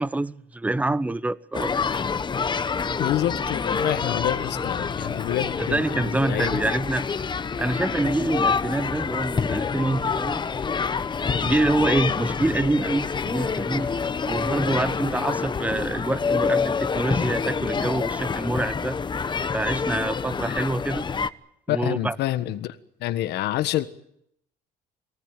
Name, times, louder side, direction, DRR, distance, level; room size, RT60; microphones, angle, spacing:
voice 1, 0.0-1.7 5.7-7.0 7.6-10.4 11.2-13.9 14.2-19.0 19.5-21.0 21.7-22.1, right 2 dB, 10° right, 0.9 m, -26 dB
sound 1, 1.5-21.3, left 5 dB, 25° left, 1.0 m, -27 dB
voice 2, 3.0-6.8 21.7-23.9, left 13 dB, 80° left, 1.5 m, -28 dB
23.0 x 19.0 x 9.2 m
cardioid pair, 110°, 17 cm